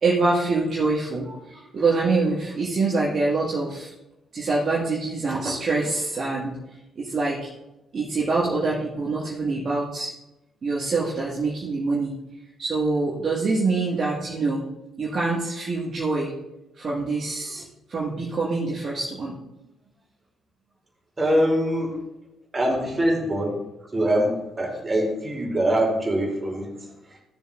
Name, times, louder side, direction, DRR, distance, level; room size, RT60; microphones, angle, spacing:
voice 1, 0.0-3.9 4.3-6.6 7.0-7.4 7.9-10.1 10.6-12.2 12.6-14.6 15.0-16.3 16.8-19.4, right 3 dB, 45° right, -6 dB, 1.7 m, -25 dB
voice 2, 21.2-22.0 22.5-23.6 23.9-27.2, right 1 dB, 25° right, -1 dB, 2.9 m, -24 dB
15.0 x 7.0 x 2.5 m, 0.96 s
figure-of-eight pair, 40°, 0 cm